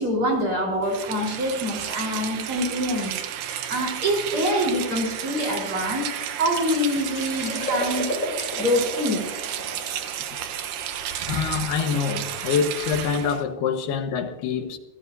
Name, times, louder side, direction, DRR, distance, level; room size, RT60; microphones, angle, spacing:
voice 1, 0.0-3.1 3.7-8.0 8.6-9.2, equal, 35° right, 4.8 m, -25 dB
Rain, 0.8-13.4, right 10 dB, 70° right, 2.4 m, -32 dB
sound 1, 6.5-12.1, left 1 dB, 30° left, 8.0 m, -34 dB
voice 2, 11.3-14.8, left 6 dB, 85° left, 3.3 m, -25 dB
29.5 x 15.0 x 2.7 m
omnidirectional pair, 4.5 m